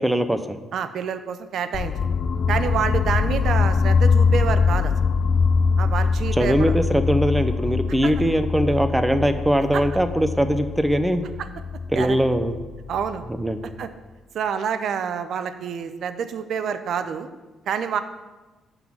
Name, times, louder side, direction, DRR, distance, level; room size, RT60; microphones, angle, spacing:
voice 1, 0.0-0.6 6.3-11.3 11.9-12.5 13.3-13.6, equal, 5° right, 9 dB, 0.7 m, -21 dB
voice 2, 0.7-2.1 2.5-4.9 5.8-6.7 8.0-8.1 9.7-9.8 11.9-12.2 12.9-13.2 13.8-13.9 14.3-17.3 17.7-18.0, right 7 dB, 70° right, 10 dB, 0.6 m, -27 dB
sound 1, 1.7-13.7, left 5 dB, 55° left, 0.4 m, -23 dB
10.5 x 4.0 x 7.3 m, 1.2 s
cardioid pair, 90°, 0 cm